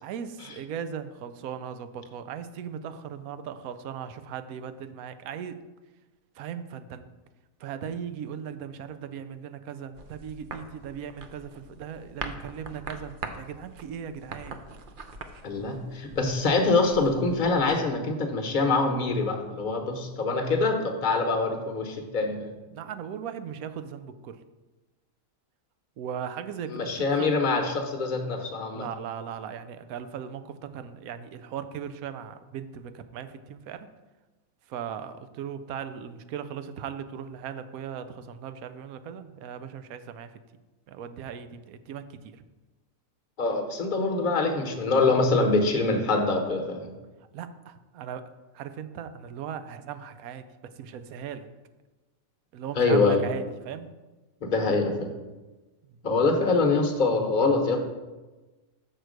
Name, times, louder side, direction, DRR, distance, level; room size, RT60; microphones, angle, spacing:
voice 1, 0.0-5.6 6.4-7.1 7.6-14.6 22.7-24.4 26.0-27.3 28.7-33.9 34.7-40.3 40.9-42.4 47.3-48.3 48.5-50.4 50.8-51.5 52.5-53.9, right 8 dB, 85° right, 11 dB, 1.1 m, -38 dB
sound 1, 9.9-17.8, right 4 dB, 55° right, 0.6 m, -43 dB
voice 2, 15.4-22.5 26.7-28.8 43.4-46.9 52.7-53.2 54.4-55.1 56.0-57.8, left 3 dB, 40° left, 4 dB, 0.9 m, -24 dB
6.6 x 4.6 x 6.3 m, 1.2 s
omnidirectional pair, 1.5 m